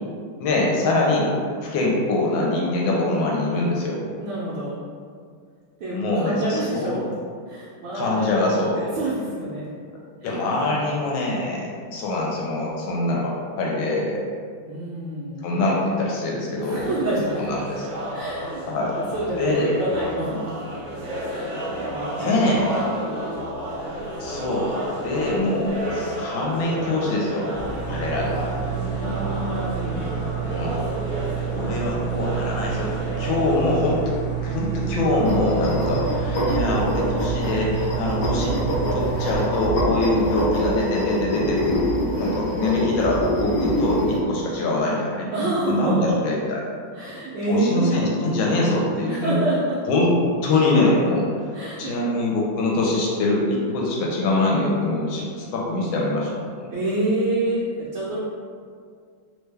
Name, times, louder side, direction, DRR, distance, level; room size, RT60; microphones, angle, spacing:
voice 1, 0.4-1.3 1.6-4.0 5.9-7.0 7.9-8.8 10.2-14.2 15.4-16.8 17.3-17.9 18.7-18.9 19.4-19.7 22.2-22.8 24.2-27.5 27.8-28.5 30.4-30.8 31.5-38.6 38.9-41.8 42.2-45.3 45.7-46.6 47.5-49.4 49.9-50.2 50.4-51.3 51.8-56.7, left 2 dB, 80° left, -3 dB, 1.3 m, -24 dB
voice 2, 4.2-4.8 5.8-7.1 7.5-8.4 8.7-9.7 10.3-10.4 14.7-15.5 16.6-17.4 18.1-20.4 20.7-20.8 21.3-23.3 23.7-23.8 25.6-25.7 28.7-30.3 31.5-32.4 45.3-46.1 46.9-48.3 49.1-49.8 51.5-52.1 56.7-58.2, right 1 dB, 75° right, -8 dB, 1.2 m, -28 dB
sound 1, 16.8-33.8, right 1 dB, 50° right, 0.9 m, -32 dB
sound 2, 27.5-39.4, right 10 dB, 35° left, 0.4 m, -29 dB
sound 3, 35.2-44.2, equal, 55° left, 1.1 m, -25 dB
3.4 x 2.2 x 3.2 m, 2.1 s
omnidirectional pair, 2.2 m